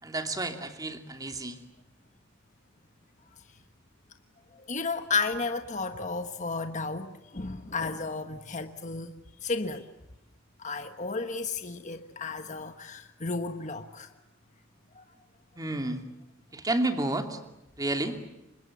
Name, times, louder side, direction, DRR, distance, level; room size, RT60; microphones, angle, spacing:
voice 1, 0.0-1.6 15.6-16.0 16.5-17.4 17.8-18.2, right 2 dB, 20° right, 2.8 m, -30 dB
voice 2, 4.5-9.1 9.4-9.9 10.6-14.1 14.9-15.0, left 4 dB, 35° left, 1.3 m, -33 dB
30.0 x 25.5 x 7.3 m
head